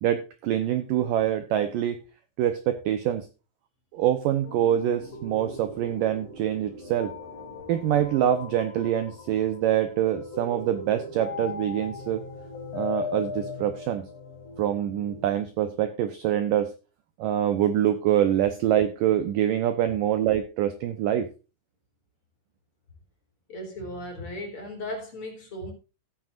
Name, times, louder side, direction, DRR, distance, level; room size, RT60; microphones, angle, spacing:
voice 1, 0.0-2.0 2.4-3.3 3.9-7.1 7.7-12.2 12.7-14.1 14.6-16.7 17.2-21.3, right 11 dB, 85° right, 1.9 m, -25 dB
sound 1, 4.4-15.3, left 4 dB, 50° left, 4.2 m, -39 dB
voice 2, 23.5-25.7, left 1 dB, 35° left, 4.0 m, -36 dB
16.5 x 9.0 x 2.5 m
omnidirectional pair, 5.0 m